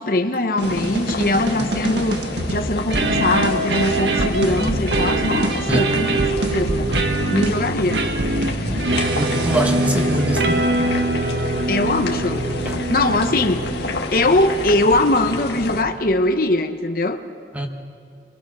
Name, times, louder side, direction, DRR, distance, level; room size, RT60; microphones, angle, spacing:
voice 1, 0.0-2.2 2.5-6.9 7.3-8.1 11.7-12.5 12.9-13.7 14.1-17.2, left 2 dB, 50° left, 6 dB, 1.0 m, -21 dB
sound 1, 0.6-15.8, left 2 dB, 70° left, 1.9 m, -29 dB
sound 2, 0.6-14.1, right 2 dB, 80° right, 1.6 m, -23 dB
voice 2, 9.2-10.7 12.4-12.8 17.5-17.7, right 1 dB, 10° right, 3 dB, 1.5 m, -23 dB
28.5 x 23.0 x 6.3 m, 2.3 s
head